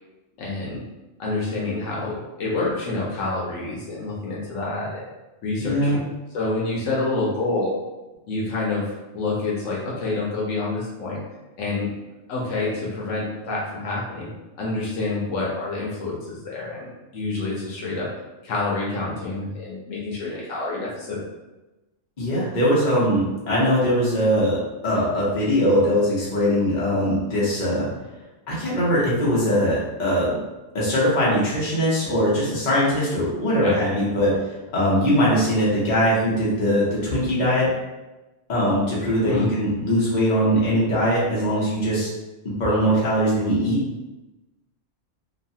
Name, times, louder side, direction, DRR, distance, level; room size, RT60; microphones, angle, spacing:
voice 1, 0.4-0.8 1.2-5.1 5.4-6.1 6.3-7.7 8.3-11.2 11.6-11.9 12.3-14.3 14.6-18.1 18.4-21.2 33.6-33.8 39.2-39.5, left 3 dB, 80° left, -5 dB, 1.0 m, -27 dB
voice 2, 5.6-6.0 22.2-24.6 24.8-27.9 28.5-30.3 30.7-34.3 34.7-37.7 38.5-42.1 42.4-43.8, equal, 40° left, -7 dB, 1.0 m, -21 dB
3.1 x 2.2 x 2.7 m, 1.1 s
omnidirectional pair, 1.3 m